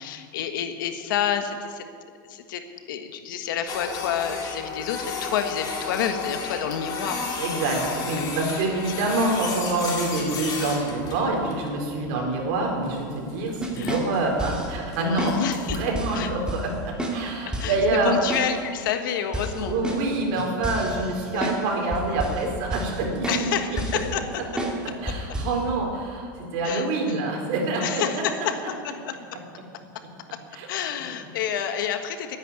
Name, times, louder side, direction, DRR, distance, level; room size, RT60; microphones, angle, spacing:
voice 1, 0.0-1.8 2.3-2.6 2.9-7.6 13.8-14.0 15.0-15.8 16.1-16.3 17.6-17.8 18.0-19.8 21.3-21.5 23.3-24.2 25.0-25.3 26.6-26.8 27.8-29.4 30.7-32.4, left 8 dB, 80° left, 7 dB, 1.6 m, -29 dB
Printer, 3.7-15.8, left 4 dB, 35° left, 3.9 m, -34 dB
voice 2, 7.4-18.2 19.5-23.8 25.0-28.0 30.5-30.7, right 2 dB, 60° right, 0 dB, 4.3 m, -26 dB
sound 1, 13.6-14.7 15.2-15.4 15.7-16.2 16.5-16.6 17.0-17.2 17.5-17.8 18.3-18.5 18.8-18.9 19.3-21.6 21.9-22.4 22.7-23.0 23.2-23.5 23.8-24.1 24.6-24.8 25.1-25.6, right 1 dB, 10° right, 2.6 m, -30 dB
12.0 x 10.0 x 9.6 m, 2.1 s
supercardioid pair, 130°, 11 cm